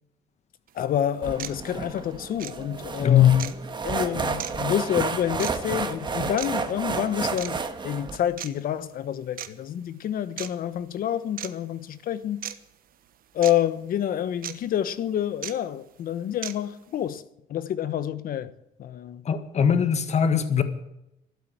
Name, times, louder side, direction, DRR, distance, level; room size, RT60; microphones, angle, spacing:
voice 1, 0.7-3.5 3.8-7.6 7.8-12.4 13.3-17.2 17.5-18.5 18.8-19.2, left 10 dB, 60° left, 1.1 m, -28 dB
Clock ticking, 0.7-0.8 1.4-1.6 2.4-2.5 3.4-3.6 4.4-4.5 5.4-5.5 6.4-6.5 7.4-7.6 8.4-8.5 9.4-9.5 10.4-10.5 11.4-11.5 12.4-12.6 13.4-13.5 14.4-14.5 15.4-15.5 16.4-16.5, right 11 dB, 60° right, 1.1 m, -34 dB
sound 1, 1.2-8.2, right 4 dB, 25° right, 1.5 m, -31 dB
voice 2, 3.0-3.4 19.2-20.6, left 9 dB, 40° left, 1.7 m, -20 dB
13.0 x 12.0 x 8.0 m
cardioid pair, 110°, 17 cm